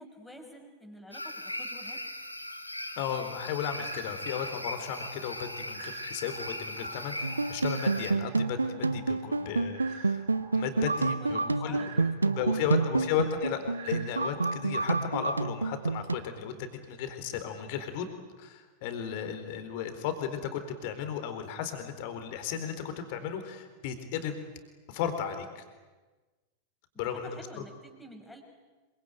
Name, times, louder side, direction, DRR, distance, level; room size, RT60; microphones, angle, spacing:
voice 1, 0.0-2.0 9.4-9.6 11.2-12.9 26.9-28.4, equal, 5° left, 3 dB, 6.0 m, -49 dB
sound 1, 1.1-8.1, left 1 dB, 85° left, 2.1 m, -39 dB
voice 2, 3.0-10.3 10.5-12.1 12.4-18.1 18.4-22.7 23.1-24.4 24.9-25.6 27.0-27.4, left 8 dB, 50° left, 8 dB, 4.1 m, -35 dB
sound 2, 3.7-15.7, right 5 dB, 60° right, 5.0 m, -49 dB
sound 3, 7.2-16.2, right 3 dB, 80° right, 0.8 m, -29 dB
26.5 x 24.5 x 9.1 m, 1.3 s
figure-of-eight pair, 90°, 0 cm